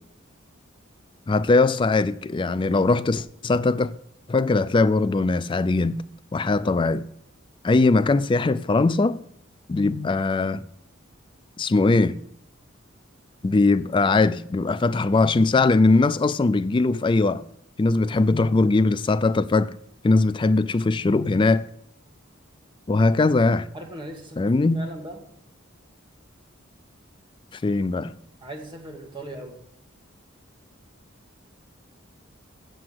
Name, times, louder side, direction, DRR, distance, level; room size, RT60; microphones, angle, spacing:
voice 1, 1.3-3.9 4.3-6.0 6.3-7.1 7.6-9.2 9.7-10.6 11.6-12.2 13.4-17.4 17.8-19.7 20.0-21.6 22.9-23.7 24.4-24.8 27.6-28.1, left 3 dB, 25° left, 0.3 m, -20 dB
voice 2, 23.7-25.2 28.4-29.6, right 1 dB, 25° right, 1.8 m, -39 dB
7.8 x 7.5 x 7.8 m
head